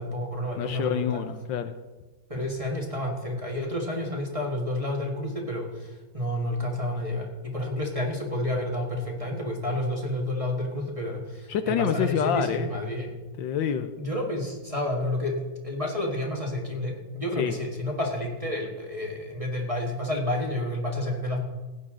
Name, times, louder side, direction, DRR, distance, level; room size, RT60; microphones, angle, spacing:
voice 1, 0.0-1.2 2.3-13.2 14.0-21.4, left 1 dB, 20° right, 0 dB, 1.5 m, -30 dB
voice 2, 0.6-1.7 11.5-12.7 13.4-13.9 17.4-17.6, left 8 dB, 75° left, 9 dB, 1.3 m, -27 dB
16.5 x 9.7 x 3.7 m, 1.2 s
omnidirectional pair, 2.2 m